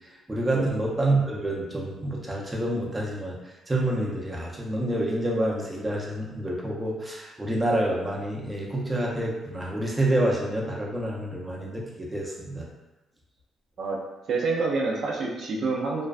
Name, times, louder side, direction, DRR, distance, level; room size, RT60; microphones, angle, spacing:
voice 1, 0.3-3.4 3.7-12.7, right 1 dB, 15° right, -3 dB, 0.5 m, -28 dB
voice 2, 14.3-16.1, right 3 dB, 60° right, -2 dB, 0.4 m, -27 dB
2.4 x 2.1 x 2.4 m, 1.0 s
cardioid pair, 90°, 0 cm